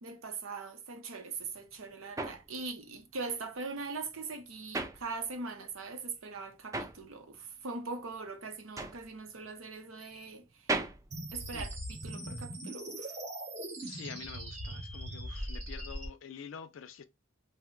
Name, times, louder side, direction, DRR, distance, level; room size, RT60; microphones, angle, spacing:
voice 1, 0.0-10.8 11.3-11.8 12.0-13.2, right 4 dB, 80° right, 0.7 m, -41 dB
sound 1, 1.4-5.7 6.0-12.2, right 2 dB, 15° right, 0.3 m, -40 dB
sound 2, 11.1-16.1, right 1 dB, 35° right, 0.8 m, -40 dB
voice 2, 13.8-17.0, left 7 dB, 70° left, 0.4 m, -47 dB
2.7 x 2.1 x 3.6 m
head